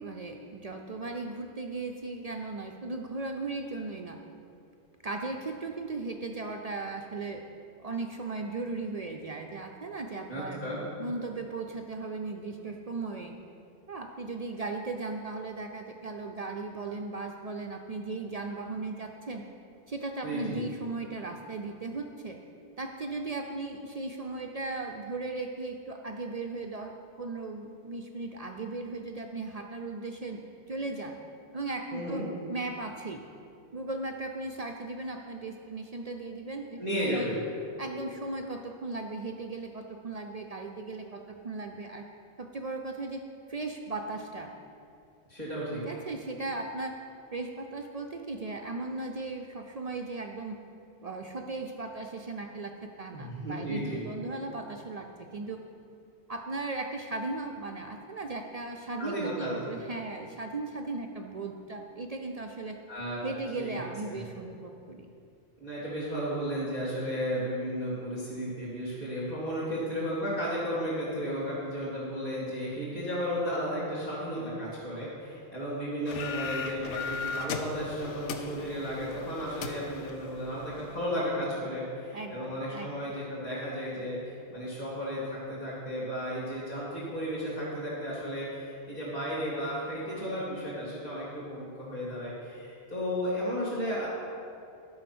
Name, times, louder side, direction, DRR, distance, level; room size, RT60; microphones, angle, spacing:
voice 1, 0.0-4.2 5.0-7.4 7.8-10.6 11.0-13.3 13.9-19.4 19.9-22.4 22.8-30.4 30.7-31.2 31.5-32.2 32.5-33.2 33.7-37.3 37.8-42.0 42.4-43.2 43.5-44.5 45.9-46.9 47.3-50.6 51.0-52.7 53.0-55.6 56.3-62.8 63.2-65.1 82.1-83.1, right 3 dB, 50° right, 3 dB, 0.5 m, -37 dB
voice 2, 10.3-10.8 20.2-20.6 31.9-32.3 36.8-37.4 45.3-45.8 53.1-54.0 59.0-59.5 62.9-63.2 63.6-63.8 64.1-64.2 65.6-94.1, equal, 35° left, -9 dB, 2.7 m, -34 dB
sound 1, 76.1-81.0, left 5 dB, 90° left, 1.0 m, -38 dB
11.5 x 5.6 x 6.1 m, 2.6 s
omnidirectional pair, 1.2 m